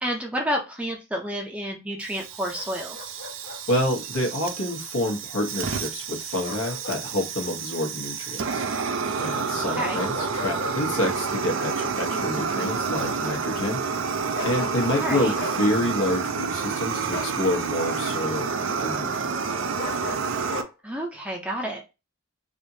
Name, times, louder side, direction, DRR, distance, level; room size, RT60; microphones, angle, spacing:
voice 1, 0.0-3.0 9.7-10.0 15.0-15.4 20.8-21.8, equal, 5° right, 0 dB, 0.6 m, -30 dB
Fire, 2.0-20.6, right 5 dB, 55° right, 0.4 m, -29 dB
Bark, 2.5-3.6 6.4-7.0 7.4-7.5 9.7-10.8 14.3-15.0 15.4-15.6 17.1-17.4 19.8-20.7, left 3 dB, 45° left, 0.7 m, -36 dB
voice 2, 3.7-8.6 9.2-13.8 14.4-18.5 18.8-19.5, left 1 dB, 70° left, 1 dB, 1.0 m, -28 dB
3.4 x 2.7 x 2.7 m, 0.26 s
head